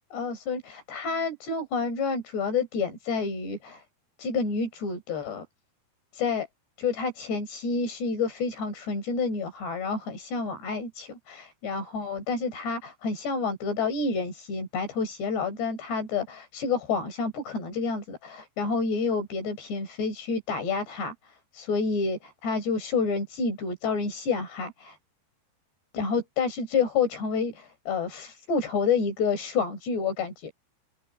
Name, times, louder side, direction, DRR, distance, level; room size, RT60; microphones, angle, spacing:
voice 1, 0.1-3.8 4.2-5.4 6.1-6.5 6.8-21.1 21.5-25.0 25.9-30.5, left 4 dB, 70° left, 7.7 m, -29 dB
omnidirectional pair, 5.0 m